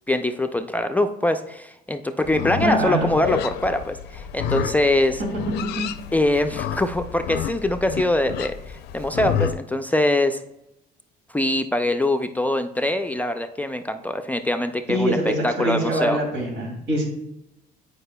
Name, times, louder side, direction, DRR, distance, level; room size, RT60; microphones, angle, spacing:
voice 1, 0.1-5.2 6.1-10.4 11.3-16.2, left 1 dB, 10° left, 7 dB, 0.3 m, -23 dB
Livestock farm animals working animals, 2.2-9.6, left 9 dB, 80° left, 0.4 m, -30 dB
voice 2, 2.6-3.1 14.9-17.0, right 1 dB, 80° right, 0 dB, 2.4 m, -23 dB
9.7 x 5.0 x 2.2 m, 0.86 s
cardioid pair, 110°, 17 cm